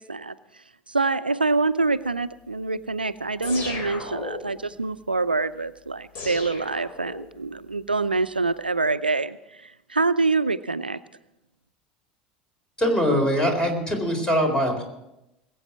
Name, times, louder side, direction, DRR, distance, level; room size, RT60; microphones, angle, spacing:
voice 1, 0.0-11.0, right 3 dB, 90° right, 14 dB, 0.4 m, -26 dB
sound 1, 3.4-4.7 6.1-7.4, left 3 dB, 50° left, 3.6 m, -35 dB
voice 2, 12.8-14.8, equal, 15° left, 4 dB, 4.1 m, -22 dB
20.5 x 8.5 x 6.1 m, 0.90 s
figure-of-eight pair, 70°, 5 cm